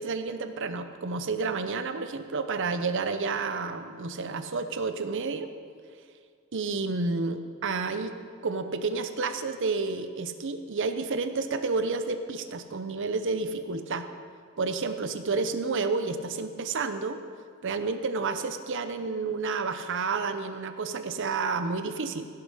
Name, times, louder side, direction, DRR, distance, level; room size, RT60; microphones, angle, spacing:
voice 1, 0.0-5.5 6.5-8.1 8.4-14.1 14.6-17.2 17.6-22.3, right 4 dB, 60° right, 9 dB, 0.7 m, -30 dB
16.5 x 6.7 x 5.6 m, 2.1 s
head